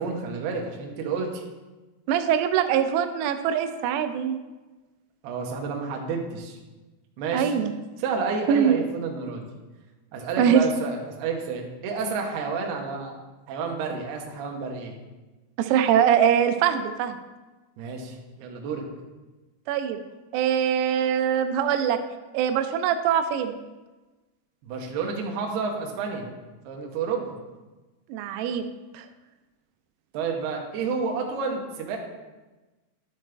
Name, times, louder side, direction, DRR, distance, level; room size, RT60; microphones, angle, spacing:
voice 1, 0.0-1.4 5.2-6.6 7.2-7.5 8.0-9.4 10.1-13.2 13.5-14.9 17.8-18.8 24.6-26.3 26.6-27.3 30.1-32.0, right 5 dB, 70° right, 1 dB, 2.6 m, -30 dB
voice 2, 2.1-4.4 7.3-7.7 8.5-8.8 10.4-10.6 15.6-17.2 19.7-20.0 20.3-22.0 22.3-23.6 28.1-28.7 29.0-29.1, right 8 dB, 90° right, 8 dB, 3.4 m, -22 dB
12.0 x 7.4 x 3.4 m, 1.2 s
omnidirectional pair, 6.0 m